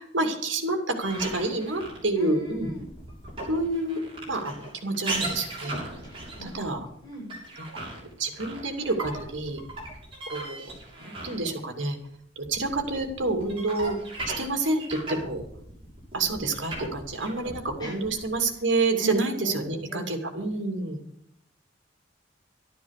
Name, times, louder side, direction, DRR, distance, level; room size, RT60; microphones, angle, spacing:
voice 1, 0.0-2.7 3.5-5.8 6.4-6.9 7.6-7.7 8.2-9.6 10.3-10.7 11.0-12.0 12.4-14.0 14.3-15.4 16.1-21.0, right 2 dB, 75° right, 4 dB, 2.7 m, -28 dB
sound 1, 1.0-11.7 12.0-18.8, right 2 dB, 30° right, 7.2 m, -37 dB
voice 2, 2.2-2.8 6.0-6.7 7.0-7.4 17.8-18.0 19.0-19.1 19.4-20.1, equal, 25° left, -2 dB, 6.3 m, -39 dB
12.5 x 12.0 x 6.6 m, 0.69 s
head